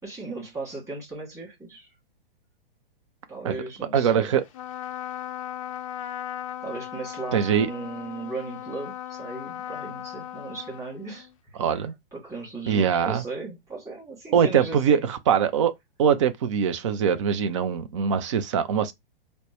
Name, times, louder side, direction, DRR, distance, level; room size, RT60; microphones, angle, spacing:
voice 1, 0.0-1.9 3.3-4.3 6.6-11.8 12.1-15.1, right 3 dB, 10° right, 2.3 m, -37 dB
voice 2, 3.9-4.4 7.3-7.7 11.6-11.9 12.7-13.2 14.3-15.7 16.0-18.9, right 7 dB, 35° right, 0.4 m, -22 dB
Trumpet, 4.5-11.3, left 12 dB, 35° left, 0.4 m, -37 dB
4.2 x 2.1 x 3.0 m
figure-of-eight pair, 110°, 29 cm